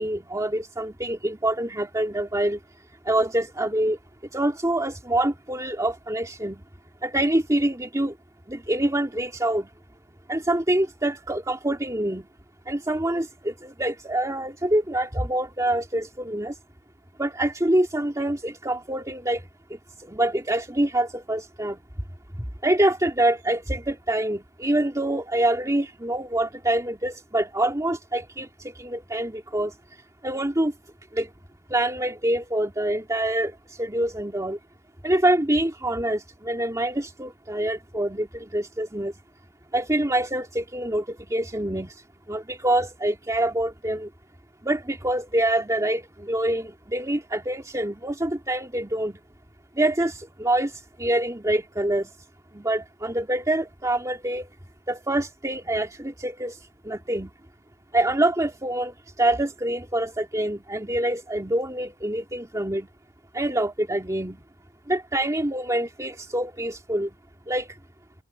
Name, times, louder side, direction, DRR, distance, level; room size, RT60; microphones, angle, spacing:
voice 1, 0.0-2.6 3.0-4.0 4.3-6.6 7.0-8.2 8.5-9.7 10.3-12.3 12.7-16.6 17.2-21.8 22.6-29.7 30.2-30.7 31.1-31.3 31.7-34.6 35.0-39.1 39.7-44.1 44.6-49.2 49.7-52.1 52.5-54.5 54.9-56.6 56.8-57.3 57.9-62.9 63.3-64.4 64.9-67.2 67.5-67.8, right 1 dB, 15° right, 2.4 m, -26 dB
head